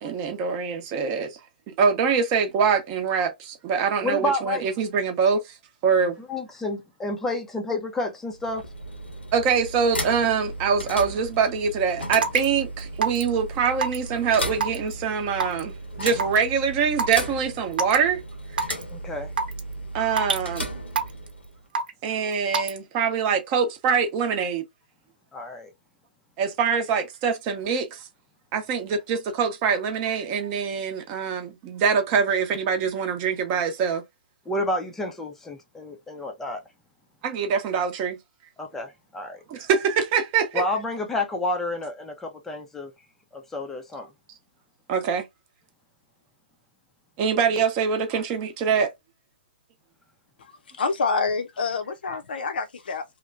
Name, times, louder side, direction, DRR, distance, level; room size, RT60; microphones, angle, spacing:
voice 1, 0.0-1.4 1.7-5.4 5.8-6.1 9.3-18.2 19.9-20.7 22.0-24.7 26.4-28.0 28.5-34.0 37.2-38.2 39.5-40.6 44.9-45.3 47.2-48.9, right 6 dB, 30° right, 0.8 m, -24 dB
voice 2, 4.0-4.6 6.2-8.7 18.9-19.3 25.3-25.7 34.5-36.6 38.6-39.4 40.5-42.9 43.3-44.1, left 2 dB, 5° left, 0.5 m, -30 dB
sound 1, 8.3-21.6, equal, 85° left, 1.0 m, -35 dB
Raindrop / Water tap faucet / Drip, 12.2-12.5 13.0-13.3 13.8-14.1 14.6-14.9 15.4-15.6 16.2-16.4 17.0-17.2 17.7-18.0 18.6-18.8 19.4-19.6 20.2-20.4 21.0-21.3 21.8-22.1 22.5-22.8, right 5 dB, 60° right, 0.9 m, -24 dB
voice 3, 50.8-53.0, left 4 dB, 60° left, 0.7 m, -27 dB
2.9 x 2.1 x 2.5 m
figure-of-eight pair, 130°, 6 cm